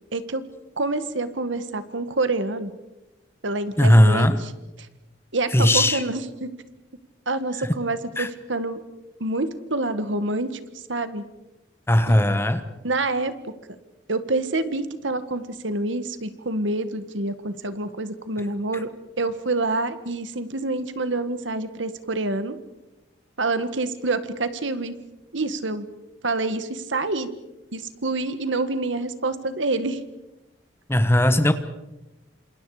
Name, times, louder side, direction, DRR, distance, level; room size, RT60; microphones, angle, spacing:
voice 1, 0.1-0.4 0.8-2.7 3.4-4.5 5.3-6.5 7.3-8.8 9.2-10.6 10.9-11.2 12.1-12.4 12.8-13.3 14.1-18.9 19.2-22.6 23.4-25.0 25.3-25.9 26.2-27.3 27.7-30.0, right 2 dB, 80° right, 11 dB, 1.7 m, -27 dB
voice 2, 3.8-4.4 5.5-6.0 8.2-8.3 11.9-12.6 30.9-31.5, left 1 dB, 15° left, 10 dB, 1.3 m, -17 dB
29.0 x 27.0 x 5.0 m, 0.97 s
head